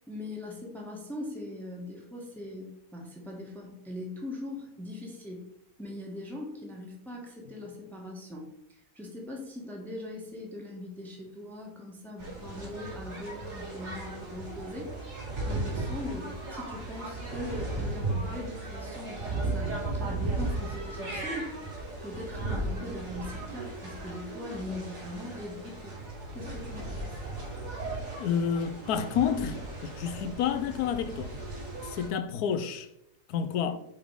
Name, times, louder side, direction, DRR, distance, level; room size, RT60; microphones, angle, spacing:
voice 1, 0.1-5.5 5.8-14.9 15.5-25.9 26.3-27.1, left 1 dB, ahead, 1.1 m, -41 dB
sound 1, 12.2-32.1, right 2 dB, 90° right, 3.2 m, -36 dB
voice 2, 28.2-31.3 31.8-32.9 33.3-33.8, left 7 dB, 80° left, 1.1 m, -29 dB
6.1 x 3.8 x 4.7 m
omnidirectional pair, 1.7 m